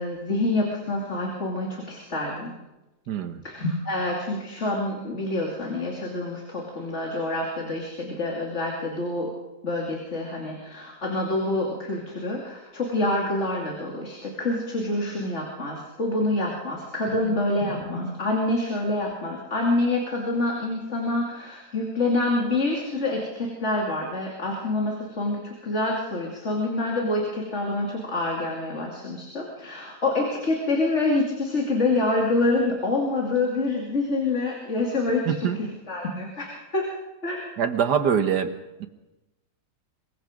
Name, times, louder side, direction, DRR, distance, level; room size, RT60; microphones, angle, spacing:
voice 1, 0.0-2.6 3.4-9.3 9.6-36.9 37.2-37.5, left 2 dB, 45° left, -1 dB, 2.9 m, -27 dB
voice 2, 3.1-3.4 17.2-17.3 35.3-35.6 37.6-38.5 38.8-38.9, right 7 dB, 75° right, 9 dB, 1.8 m, -24 dB
24.5 x 21.5 x 5.1 m, 1.0 s
omnidirectional pair, 1.8 m